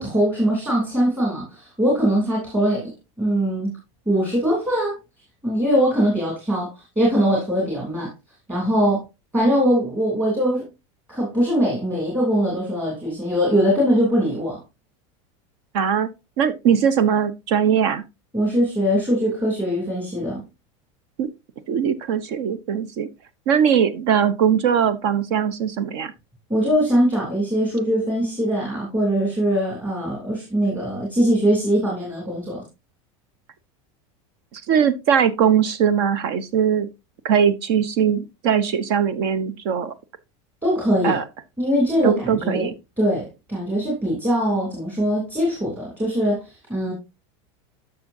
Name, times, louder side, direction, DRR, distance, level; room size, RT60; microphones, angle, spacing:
voice 1, 0.0-2.9 3.2-3.8 4.1-4.9 5.4-8.1 8.5-9.0 9.3-10.6 11.1-14.6 18.3-20.4 26.5-32.6 40.6-41.2 41.6-42.7 43.0-46.9, equal, 10° right, 3.1 m, -21 dB
voice 2, 15.7-16.1 16.4-18.0 21.2-21.3 21.7-23.1 23.5-26.1 34.5-36.9 37.2-39.9 41.0-41.2 42.0-42.7, right 8 dB, 55° right, 0.8 m, -20 dB
12.0 x 6.3 x 2.7 m
supercardioid pair, 170°, 16 cm